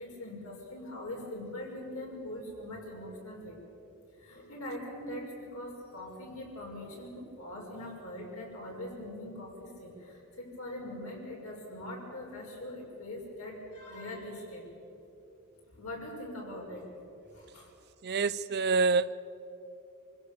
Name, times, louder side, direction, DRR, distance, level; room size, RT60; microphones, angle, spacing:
voice 1, 0.0-3.6 4.2-14.7 15.7-16.9 17.2-17.7, left 1 dB, 70° left, -2 dB, 5.9 m, -42 dB
voice 2, 18.0-19.1, right 4 dB, 45° right, 17 dB, 0.5 m, -27 dB
26.5 x 16.0 x 7.0 m, 2.9 s
head